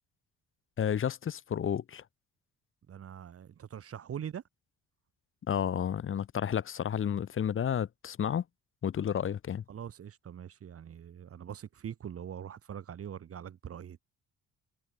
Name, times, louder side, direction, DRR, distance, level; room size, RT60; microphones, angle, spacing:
voice 1, 0.8-2.0 5.4-8.4 8.8-9.6, left 8 dB, 45° left, 0.9 m, -31 dB
voice 2, 2.9-4.4 9.7-14.0, right 9 dB, 50° right, 1.4 m, -43 dB
cardioid pair, 90°, 30 cm